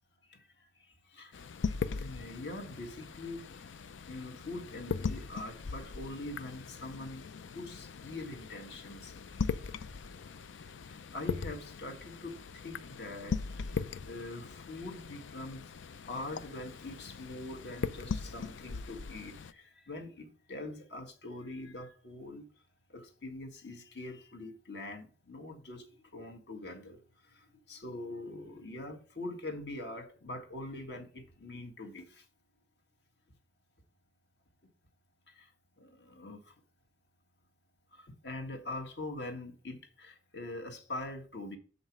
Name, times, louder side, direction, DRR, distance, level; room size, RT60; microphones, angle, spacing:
voice 1, 0.3-0.7 1.0-3.5 4.1-7.3 7.5-9.6 10.0-10.3 10.9-15.7 16.1-22.4 22.9-25.9 26.1-32.2 35.3-35.5 35.8-36.5 37.9-41.6, left 2 dB, 60° left, 1.6 m, -44 dB
sound 1, 1.3-19.5, left 5 dB, 80° left, 0.5 m, -40 dB
7.7 x 4.1 x 6.0 m
head